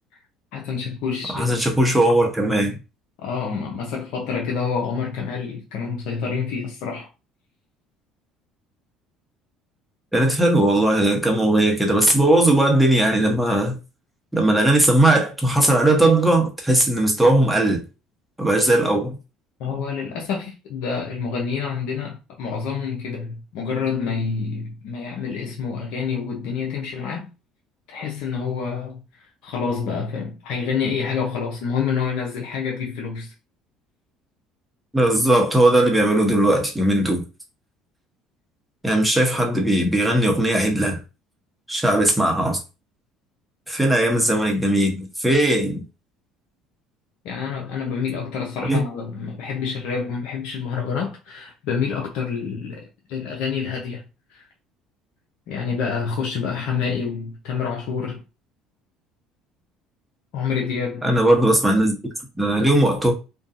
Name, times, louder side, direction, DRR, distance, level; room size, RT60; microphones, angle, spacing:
voice 1, 0.5-1.6 3.2-7.1 19.6-27.3 27.9-33.3 47.2-54.0 54.3-54.4 55.5-58.2 60.3-61.0, left 6 dB, 70° left, 0.6 m, -27 dB
voice 2, 1.3-2.8 10.1-13.8 14.3-17.8 18.4-19.2 34.9-37.2 38.8-41.0 41.7-42.6 43.7-45.8 48.6-48.8 61.0-62.0 62.4-63.1, right 1 dB, 5° right, 0.9 m, -18 dB
2.5 x 2.3 x 2.5 m
supercardioid pair, 80°, 0 cm